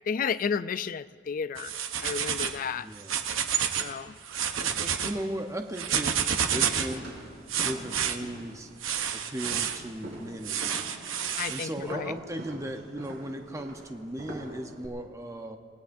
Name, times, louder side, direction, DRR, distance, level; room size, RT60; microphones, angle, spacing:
voice 1, 0.1-1.7 2.0-2.9 3.8-4.1 11.4-12.1, left 6 dB, 40° left, 15 dB, 0.3 m, -32 dB
sound 1, 1.6-2.6 3.0-3.9 4.2-5.1 5.7-7.0 7.5-8.2 8.8-9.8 10.4-11.7, right 8 dB, 80° right, 0.9 m, -29 dB
voice 2, 2.7-3.2 4.6-7.1 7.6-8.7 9.1-11.0 11.5-15.6, right 1 dB, 15° right, 4 dB, 0.7 m, -37 dB
sound 2, 6.9-14.9, right 1 dB, 55° right, 4.0 m, -44 dB
26.0 x 18.5 x 2.6 m, 2.1 s
head